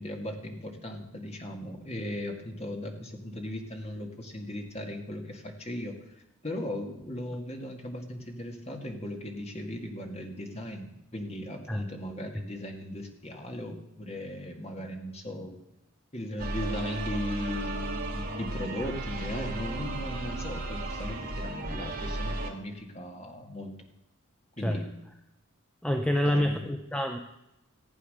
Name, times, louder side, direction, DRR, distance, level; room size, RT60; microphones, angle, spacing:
voice 1, 0.0-15.7 16.1-23.7 24.6-25.0 26.2-26.6, left 1 dB, 30° left, 3 dB, 1.9 m, -37 dB
sound 1, 16.4-22.5, right 2 dB, 45° right, 2.1 m, -34 dB
voice 2, 25.8-27.2, equal, 5° left, 4 dB, 0.6 m, -27 dB
15.5 x 8.5 x 6.7 m, 0.88 s
head